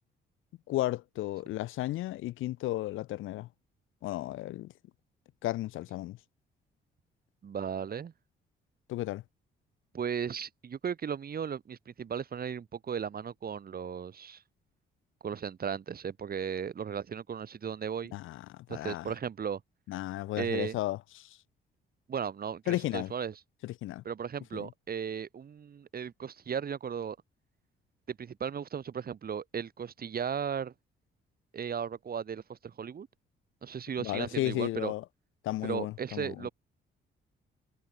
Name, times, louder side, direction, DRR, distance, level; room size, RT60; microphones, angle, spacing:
voice 1, 0.7-3.5 4.0-4.7 5.4-6.2 8.9-9.2 18.1-19.1 19.9-21.4 22.7-23.1 23.6-24.0 24.5-24.7 34.0-35.0 35.4-36.5, left 16 dB, 85° left, 1.3 m, -34 dB
voice 2, 7.4-8.1 9.9-14.4 15.2-18.2 18.7-19.6 20.4-20.7 22.1-23.3 24.0-27.2 28.1-30.7 31.5-33.1 33.6-34.9 35.6-36.5, right 7 dB, 50° right, 4.0 m, -36 dB
cardioid pair, 90°, 20 cm